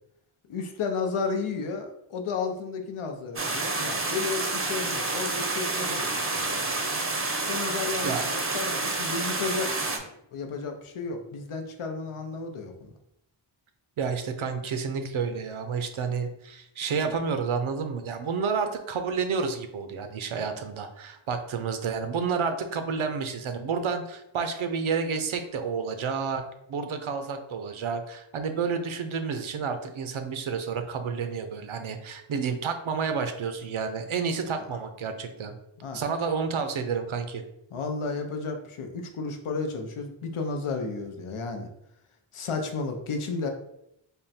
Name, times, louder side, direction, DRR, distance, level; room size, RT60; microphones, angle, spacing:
voice 1, 0.5-6.8 7.4-12.9 34.6-34.7 35.8-36.0 37.7-41.7 42.3-43.5, left 4 dB, 80° left, 5 dB, 0.7 m, -33 dB
sound 1, 3.4-10.0, right 3 dB, 25° right, 0.6 m, -29 dB
voice 2, 14.0-35.6 35.9-37.4, right 5 dB, 75° right, 7 dB, 0.6 m, -30 dB
3.6 x 2.1 x 4.1 m, 0.81 s
wide cardioid pair, 70°, 50 cm